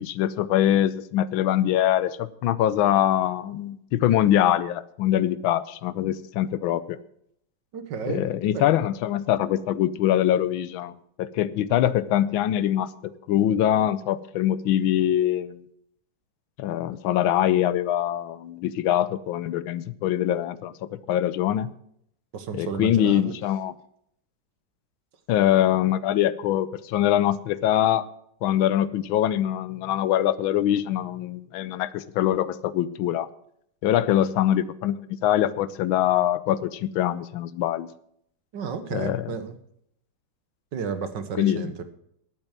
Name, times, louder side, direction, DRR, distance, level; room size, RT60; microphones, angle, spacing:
voice 1, 0.0-7.0 8.1-10.9 11.2-15.6 16.6-20.7 21.1-21.7 22.5-23.7 25.3-28.1 28.4-33.3 33.8-37.9 38.9-39.4 41.4-41.7, left 11 dB, 85° left, 17 dB, 1.5 m, -23 dB
voice 2, 7.7-8.2 8.5-8.6 22.3-23.3 34.1-34.2 38.5-39.6 40.7-41.8, right 6 dB, 65° right, 10 dB, 1.8 m, -32 dB
11.5 x 9.0 x 7.4 m, 0.71 s
omnidirectional pair, 2.2 m